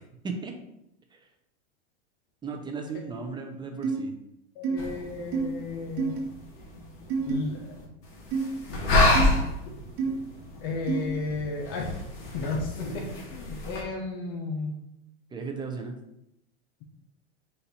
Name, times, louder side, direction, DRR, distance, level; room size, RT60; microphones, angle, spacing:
voice 1, 0.2-0.6 1.1-1.2 2.4-4.1 15.3-15.9, right 4 dB, 15° right, 4 dB, 0.5 m, -35 dB
sound 1, 3.8-4.0 4.6-4.7 5.3-5.4 6.0-6.2 7.1-7.3 8.3-8.5 9.1-9.3 10.0-10.1 10.9-11.0, right 5 dB, 45° right, 1.1 m, -27 dB
voice 2, 4.5-6.1 7.3-7.8 10.6-12.0 12.3-14.8, left 3 dB, 60° left, 1 dB, 0.9 m, -33 dB
sound 2, 4.8-13.8, left 2 dB, 40° left, 1.3 m, -29 dB
4.3 x 2.6 x 4.1 m, 0.83 s
supercardioid pair, 120°, 34 cm